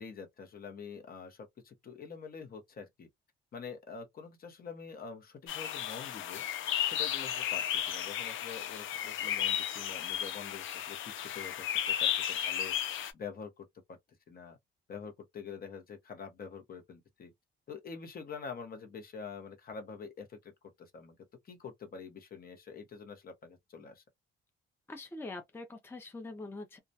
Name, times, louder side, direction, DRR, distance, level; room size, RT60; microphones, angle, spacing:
voice 1, 0.0-3.1 3.5-14.0 14.3-14.6 14.9-17.3 17.7-20.5 20.8-21.2 21.4-24.0, left 5 dB, 50° left, 0.9 m, -46 dB
sound 1, 5.5-13.1, left 10 dB, 80° left, 0.5 m, -34 dB
voice 2, 24.9-26.8, left 2 dB, 10° left, 0.5 m, -43 dB
2.3 x 2.1 x 2.6 m
cardioid pair, 90°, 20 cm